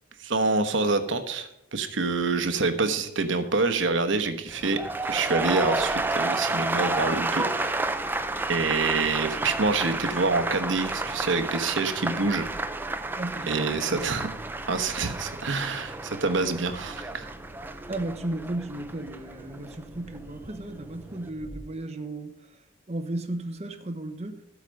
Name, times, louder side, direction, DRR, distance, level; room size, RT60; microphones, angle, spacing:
voice 1, 0.2-4.8 5.1-8.0 8.5-12.5 13.5-14.3 14.7-17.3, right 3 dB, 65° right, 1.1 m, -26 dB
sound 1, 4.5-20.6 20.9-21.3, right 2 dB, 10° right, 0.4 m, -31 dB
sound 2, 5.8-21.6, right 1 dB, 35° left, 2.5 m, -48 dB
voice 2, 13.1-14.1 17.9-22.6 22.9-24.5, right 1 dB, 30° right, 1.0 m, -34 dB
13.0 x 8.2 x 5.3 m
head